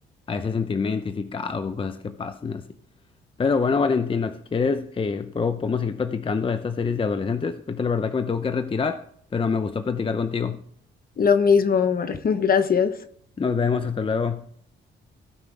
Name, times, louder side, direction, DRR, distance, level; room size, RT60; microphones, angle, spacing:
voice 1, 0.3-2.7 3.4-9.0 9.3-10.6 13.4-14.5, left 5 dB, 25° left, 0.7 m, -25 dB
voice 2, 11.2-12.9, left 6 dB, 45° left, 1.1 m, -20 dB
16.5 x 5.7 x 3.4 m
cardioid pair, 90°, 20 cm